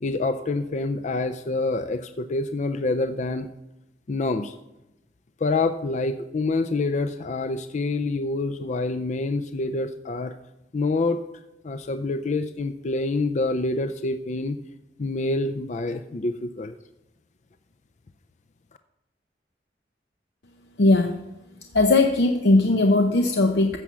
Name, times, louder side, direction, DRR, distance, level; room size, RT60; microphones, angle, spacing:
voice 1, 0.0-3.5 4.1-4.5 5.4-10.3 10.7-11.2 11.6-14.6 15.0-16.8, left 3 dB, 40° left, 9 dB, 0.5 m, -26 dB
voice 2, 20.8-21.2 21.7-23.8, left 2 dB, 75° left, 4 dB, 0.8 m, -19 dB
15.0 x 6.1 x 7.0 m, 0.95 s
head